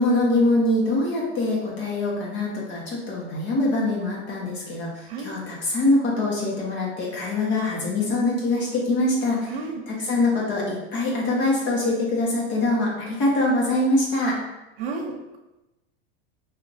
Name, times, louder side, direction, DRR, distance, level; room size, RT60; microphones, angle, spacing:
voice 1, 0.0-9.6 9.9-14.4, left 2 dB, 35° left, -4 dB, 1.3 m, -23 dB
voice 2, 9.5-9.8 14.8-15.4, right 4 dB, 70° right, -2 dB, 0.9 m, -32 dB
6.1 x 2.8 x 2.6 m, 0.99 s
supercardioid pair, 165°, 31 cm